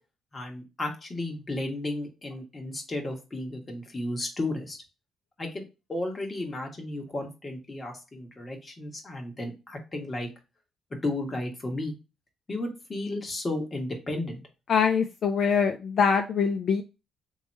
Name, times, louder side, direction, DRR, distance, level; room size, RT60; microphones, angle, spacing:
voice 1, 0.3-4.8 5.4-5.6 5.9-10.3 11.0-11.9 12.5-14.4, left 2 dB, 30° left, 2 dB, 1.5 m, -33 dB
voice 2, 14.7-16.8, left 6 dB, 60° left, 6 dB, 0.4 m, -23 dB
3.5 x 3.1 x 4.3 m, 0.27 s
cardioid pair, 90°, 0 cm